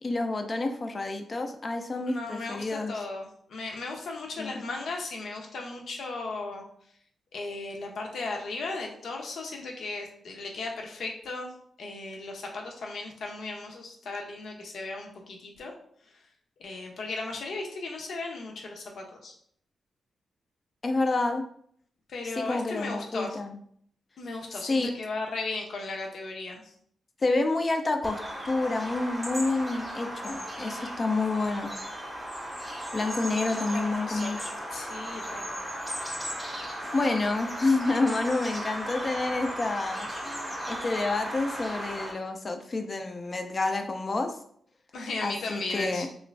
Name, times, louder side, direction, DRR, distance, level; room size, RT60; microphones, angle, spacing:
voice 1, 0.0-2.9 4.4-4.6 20.8-21.4 22.4-23.6 24.7-24.9 27.2-28.2 28.4-31.7 32.9-34.4 36.9-44.4 45.2-46.1, left 3 dB, 30° left, 5 dB, 0.4 m, -28 dB
voice 2, 2.1-6.6 7.3-11.5 11.8-15.7 16.6-19.3 22.1-23.4 24.2-26.7 33.7-34.3 34.7-35.5 44.9-46.1, left 3 dB, 70° left, 1 dB, 0.7 m, -36 dB
Bird vocalization bird call bird song, 28.0-42.1, equal, 5° right, 0.8 m, -36 dB
3.0 x 2.5 x 3.1 m, 0.63 s
wide cardioid pair, 120°, 0 cm